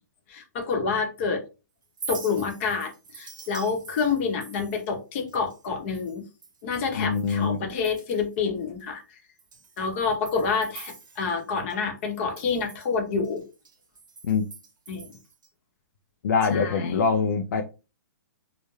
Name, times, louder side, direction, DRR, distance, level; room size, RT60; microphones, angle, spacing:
voice 1, 0.3-1.4 2.1-6.2 6.6-9.0 9.8-13.4 14.9-15.1 16.5-17.0, left 5 dB, 40° left, 0.8 m, -28 dB
Chink clink, 1.8-7.5 7.8-8.4 8.8-8.9 9.4-11.8 12.0-15.5, right 5 dB, 80° right, 0.7 m, -45 dB
voice 2, 7.0-7.6 14.3-14.4 16.2-17.6, left 5 dB, 70° left, 0.4 m, -23 dB
2.3 x 2.1 x 3.1 m
hypercardioid pair, 150°, 10 cm